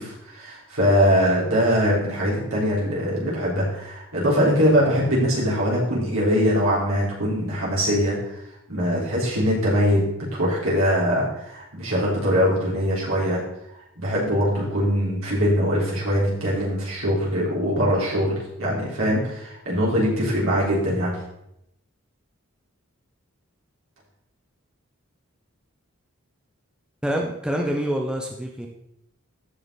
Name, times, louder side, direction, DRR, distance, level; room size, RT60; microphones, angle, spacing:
voice 1, 0.0-8.4 8.7-10.0 10.3-13.4 14.0-21.1, equal, 70° right, -6 dB, 4.4 m, -22 dB
voice 2, 27.0-28.7, equal, 5° right, 1 dB, 0.9 m, -26 dB
14.0 x 5.9 x 4.1 m, 0.80 s
head